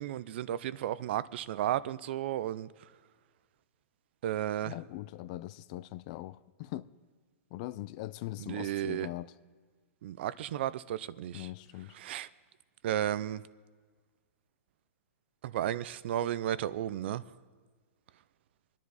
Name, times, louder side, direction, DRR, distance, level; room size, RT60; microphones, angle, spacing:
voice 1, 0.0-2.7 4.2-4.7 8.4-9.1 10.0-11.5 12.0-12.3 12.8-13.4 15.4-17.2, right 12 dB, 45° right, 0.5 m, -33 dB
voice 2, 4.6-6.9 7.5-9.3 11.3-12.0, left 16 dB, 30° left, 0.3 m, -41 dB
26.5 x 10.5 x 4.1 m
hypercardioid pair, 165°, 8 cm